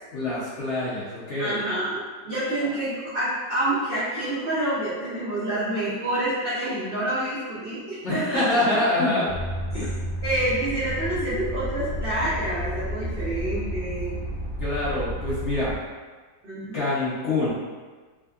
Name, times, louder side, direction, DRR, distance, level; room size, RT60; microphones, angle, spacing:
voice 1, 0.1-1.6 8.0-9.3 9.7-9.9 14.6-15.7 16.7-17.5, left 2 dB, 60° left, -10 dB, 0.8 m, -25 dB
voice 2, 1.4-8.4 9.7-9.8 10.2-14.2 16.4-16.9, right 1 dB, 65° right, -10 dB, 0.5 m, -28 dB
sound 1, 9.3-15.8, equal, 15° left, 0.9 m, -31 dB
3.5 x 2.1 x 2.3 m, 1.4 s
omnidirectional pair, 1.8 m